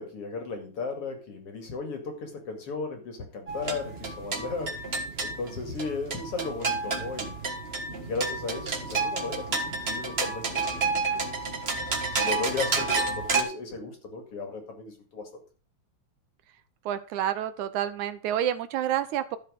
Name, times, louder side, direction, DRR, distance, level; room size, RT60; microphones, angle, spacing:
voice 1, 0.0-7.4 7.9-11.3 12.1-15.3, left 4 dB, 50° left, 4 dB, 3.1 m, -36 dB
sound 1, 3.5-13.4, right 3 dB, 35° right, 1.0 m, -30 dB
voice 2, 16.9-19.4, right 10 dB, 75° right, 12 dB, 2.2 m, -29 dB
12.5 x 7.6 x 5.2 m, 0.38 s
omnidirectional pair, 3.6 m